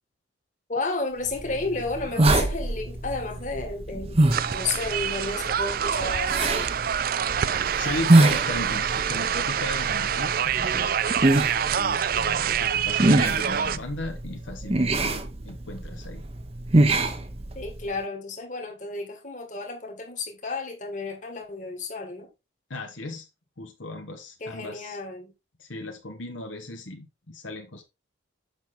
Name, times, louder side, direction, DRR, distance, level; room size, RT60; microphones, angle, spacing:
voice 1, 0.7-4.2 4.5-6.7 17.6-22.3 24.4-25.3, left 3 dB, 40° left, 1.9 m, -32 dB
sound 1, 1.3-17.9, right 2 dB, 30° right, 0.8 m, -25 dB
sound 2, 4.3-13.8, right 8 dB, 45° right, 0.4 m, -26 dB
voice 2, 7.8-11.0 11.6-16.2 22.7-23.3 23.6-25.0 25.6-27.8, left 2 dB, 75° left, 1.3 m, -36 dB
7.4 x 5.9 x 3.7 m
head